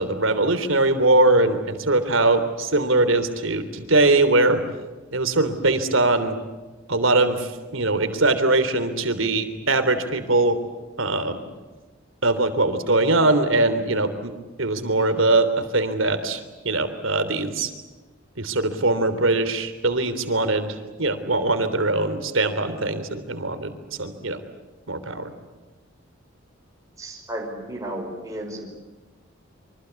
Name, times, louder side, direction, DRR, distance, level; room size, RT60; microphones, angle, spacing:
voice 1, 0.0-4.6 5.1-6.4 6.9-10.6 11.0-11.4 12.2-14.3 14.6-17.7 18.4-24.4 24.9-25.3, right 2 dB, 80° right, 10 dB, 3.4 m, -21 dB
voice 2, 27.0-28.7, right 1 dB, 15° right, 0 dB, 5.2 m, -33 dB
26.0 x 25.0 x 8.3 m, 1.3 s
head